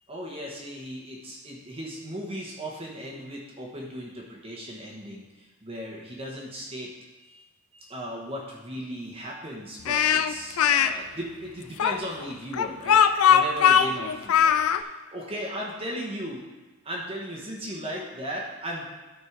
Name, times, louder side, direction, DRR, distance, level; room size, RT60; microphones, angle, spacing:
voice 1, 0.1-6.9 7.2-7.4 7.7-13.0 13.3-16.4 16.8-18.9, equal, 25° right, -3 dB, 1.2 m, -37 dB
Speech, 9.8-10.9 11.8-14.8, left 8 dB, 75° left, 0.4 m, -20 dB
12.5 x 4.4 x 4.7 m, 1.2 s
head